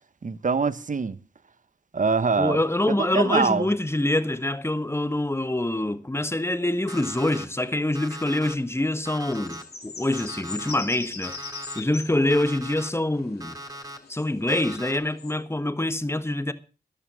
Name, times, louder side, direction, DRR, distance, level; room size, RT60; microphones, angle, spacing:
voice 1, 0.2-1.2 1.9-2.6 2.9-3.7, right 4 dB, 50° right, 1.1 m, -24 dB
voice 2, 2.4-11.4 11.7-13.6 14.1-16.5, left 1 dB, 15° left, 1.4 m, -25 dB
Alarm, 6.9-7.5 8.0-8.5 9.1-9.6 10.1-10.7 11.2-11.8 12.3-12.9 13.4-14.0 14.5-15.0, equal, 20° right, 2.8 m, -39 dB
sound 1, 9.3-15.3, left 4 dB, 70° left, 3.1 m, -41 dB
14.0 x 11.0 x 6.3 m
cardioid pair, 55°, 17 cm